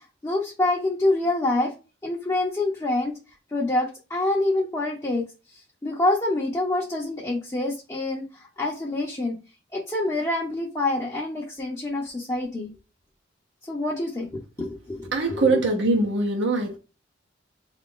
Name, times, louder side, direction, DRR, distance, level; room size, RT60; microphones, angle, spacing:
voice 1, 0.0-1.7 2.0-3.1 3.5-5.2 5.8-9.4 9.7-12.7 13.6-15.6, left 2 dB, 15° left, 0.6 m, -26 dB
voice 2, 15.1-16.8, right 2 dB, 65° right, 0.8 m, -22 dB
3.9 x 2.4 x 3.7 m
head